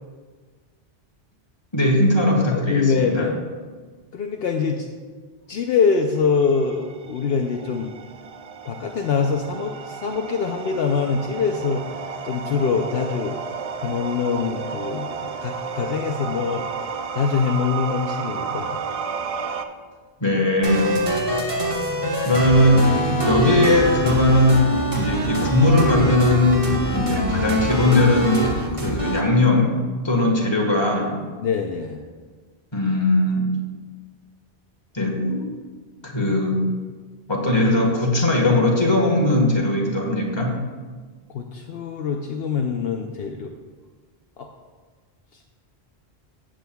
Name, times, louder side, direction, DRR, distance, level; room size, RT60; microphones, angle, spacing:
voice 1, 1.7-3.3 20.2-20.9 22.2-22.9 23.3-28.5 28.8-29.8 30.0-31.2 32.7-33.5 34.9-35.5 36.0-36.7 37.3-40.6, left 1 dB, 25° left, 0 dB, 1.4 m, -19 dB
voice 2, 2.5-3.3 4.1-4.8 5.5-7.9 8.7-11.8 12.2-13.4 13.8-16.6 17.1-18.8 31.4-32.0 41.3-43.5 44.4-44.5, left 5 dB, 70° left, 2 dB, 0.8 m, -24 dB
sound 1, 6.4-19.6, right 6 dB, 50° right, 0.4 m, -32 dB
sound 2, 20.6-29.2, equal, 30° right, 1.3 m, -24 dB
15.0 x 7.6 x 2.3 m, 1.4 s
omnidirectional pair, 1.1 m